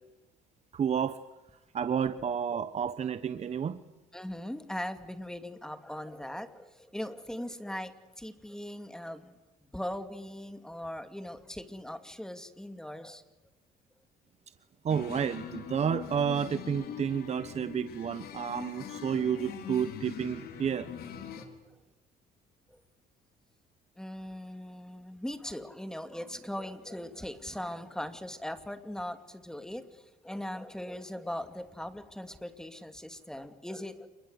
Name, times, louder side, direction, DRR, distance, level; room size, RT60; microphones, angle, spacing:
voice 1, 0.7-1.2 1.7-3.8 14.8-20.9, right 7 dB, 40° right, 12 dB, 1.1 m, -31 dB
voice 2, 4.1-9.4 9.7-13.2 21.4-21.7 22.7-22.8 24.0-34.1, left 1 dB, 5° left, 8 dB, 2.6 m, -40 dB
sound 1, 14.9-21.5, left 8 dB, 65° left, 4.1 m, -42 dB
28.5 x 21.5 x 8.2 m, 1.1 s
cardioid pair, 110°, 17 cm